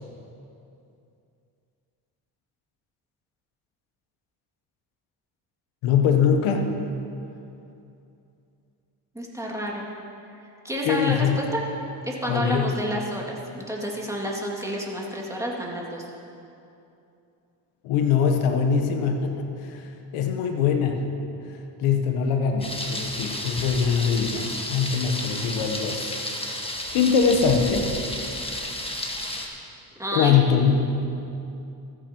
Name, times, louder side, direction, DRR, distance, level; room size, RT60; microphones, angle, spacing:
voice 1, 5.8-6.7 10.8-11.4 12.3-12.7 17.8-19.9 20.1-21.1 21.8-26.2 26.9-27.9 30.1-30.9, left 6 dB, 75° left, 4 dB, 1.1 m, -22 dB
voice 2, 9.1-9.9 10.4-11.6 12.0-16.0 29.0-29.2 30.0-30.4, equal, 5° right, -3 dB, 2.3 m, -30 dB
Thunder, 22.6-29.5, left 1 dB, 10° left, 1.4 m, -32 dB
14.5 x 8.8 x 3.0 m, 2.7 s
supercardioid pair, 55°, 50 cm